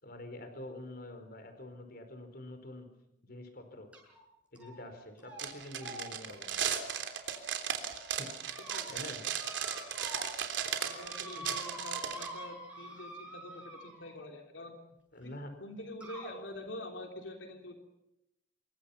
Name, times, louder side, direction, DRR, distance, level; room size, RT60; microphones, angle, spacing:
voice 1, 0.0-2.9 3.2-3.9 4.5-6.6 8.1-8.3 8.9-9.2 11.3-11.5 15.1-15.5, left 1 dB, 55° left, 7 dB, 4.7 m, -46 dB
sound 1, 3.9-4.2 4.6-4.9 5.2-5.4 5.8-7.7 8.2-8.8 9.4-10.4 10.6-14.2 15.2-15.3 16.0-16.3, right 1 dB, 5° right, 7.2 m, -47 dB
sound 2, 5.4-12.3, right 8 dB, 80° right, 3.4 m, -36 dB
voice 2, 10.8-14.8 15.2-15.3 15.6-17.8, left 1 dB, 90° left, 3 dB, 3.5 m, -46 dB
27.0 x 23.0 x 5.8 m, 0.89 s
head